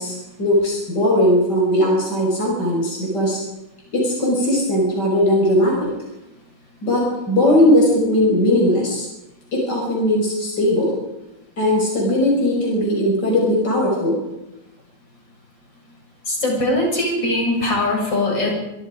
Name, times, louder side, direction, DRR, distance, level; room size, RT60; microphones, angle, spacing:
voice 1, 0.0-3.4 3.9-5.9 6.8-9.1 9.5-11.0 11.6-14.2, left 1 dB, 65° left, -2 dB, 6.2 m, -18 dB
voice 2, 16.3-18.5, left 1 dB, 80° left, -1 dB, 7.8 m, -21 dB
25.0 x 24.5 x 5.2 m, 0.95 s
omnidirectional pair, 2.0 m